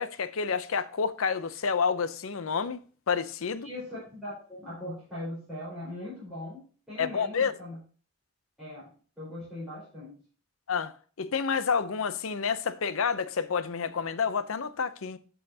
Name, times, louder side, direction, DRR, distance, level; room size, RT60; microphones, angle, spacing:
voice 1, 0.0-2.8 3.1-3.7 7.0-7.5 10.7-15.2, left 6 dB, 75° left, 0.6 m, -29 dB
voice 2, 3.6-7.8 8.6-8.9 9.2-10.2, left 1 dB, ahead, 4.6 m, -40 dB
11.5 x 5.6 x 2.8 m
head